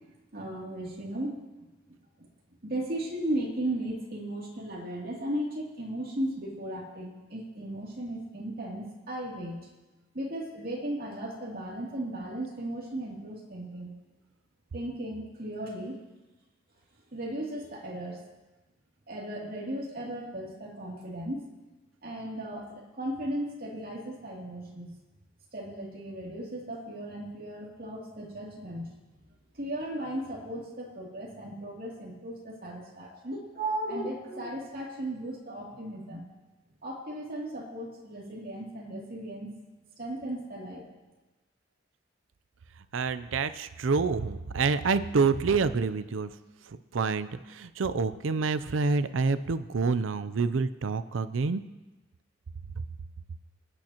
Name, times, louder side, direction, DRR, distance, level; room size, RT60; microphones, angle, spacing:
voice 1, 0.3-1.4 2.2-2.3 2.6-9.7 10.1-13.9 14.7-16.0 17.1-18.2 19.1-21.5 22.0-24.9 25.5-28.9 29.5-36.2 36.8-39.5 40.0-40.8, right 1 dB, 50° right, -3 dB, 2.7 m, -36 dB
voice 2, 42.9-46.3 46.7-51.6, right 4 dB, 85° right, 13 dB, 0.5 m, -27 dB
27.0 x 9.0 x 2.9 m, 1.1 s
head